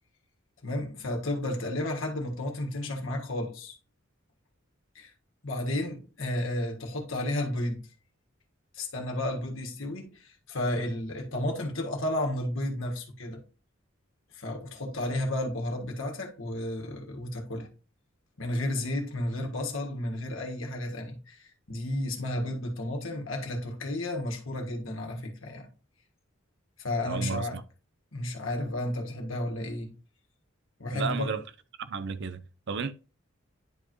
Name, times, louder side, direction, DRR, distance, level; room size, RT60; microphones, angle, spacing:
voice 1, 0.6-3.8 4.9-5.1 5.4-7.9 8.7-13.4 14.3-17.7 18.4-25.7 26.8-27.6 28.1-29.9 30.8-31.3, left 1 dB, 70° left, 1.6 m, -32 dB
voice 2, 27.1-27.6 30.9-31.4 31.8-32.9, right 5 dB, 60° right, 0.6 m, -33 dB
10.5 x 4.9 x 3.0 m
head